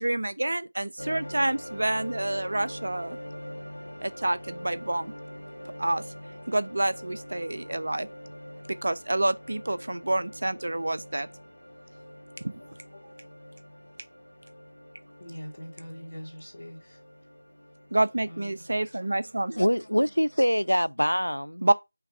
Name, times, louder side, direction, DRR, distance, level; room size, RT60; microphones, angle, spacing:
voice 1, 0.0-3.2 4.0-5.1 5.8-6.0 6.5-8.1 8.8-11.3 12.4-12.5 17.9-19.6 21.6-21.7, right 1 dB, 50° right, 0.6 m, -28 dB
sound 1, 1.0-20.8, equal, 70° left, 2.2 m, -44 dB
voice 2, 15.2-17.0 18.3-18.7, equal, 50° left, 2.7 m, -42 dB
voice 3, 19.6-21.6, equal, 90° left, 0.3 m, -24 dB
5.8 x 3.4 x 5.5 m
figure-of-eight pair, 170°, 0 cm